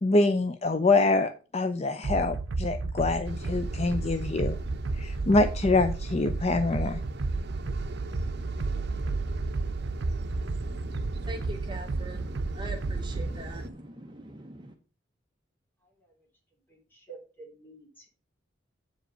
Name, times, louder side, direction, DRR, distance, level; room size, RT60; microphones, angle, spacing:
voice 1, 0.0-4.6 4.9-7.0, left 2 dB, 35° left, 9 dB, 0.5 m, -25 dB
sound 1, 2.0-13.3, right 3 dB, 85° right, 0.6 m, -32 dB
sound 2, 3.2-13.7, right 1 dB, 60° right, 0.9 m, -39 dB
voice 2, 10.6-14.7, right 1 dB, 25° right, 4 dB, 0.8 m, -42 dB
voice 3, 16.9-18.1, right 4 dB, 10° left, -1 dB, 3.3 m, -48 dB
8.0 x 5.1 x 6.4 m, 0.36 s
head